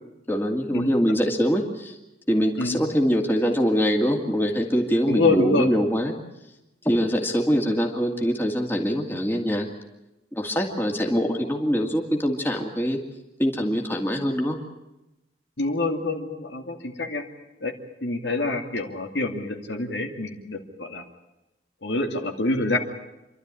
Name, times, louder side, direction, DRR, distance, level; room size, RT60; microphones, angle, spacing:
voice 1, 0.3-2.0 2.3-6.1 6.8-9.7 10.3-13.0 13.4-14.6, equal, 10° left, 1 dB, 2.4 m, -23 dB
voice 2, 5.1-5.7 15.6-17.2 17.6-17.7 18.0-21.0 21.8-22.8, left 2 dB, 85° left, 3 dB, 2.6 m, -26 dB
27.5 x 12.5 x 9.8 m, 0.97 s
head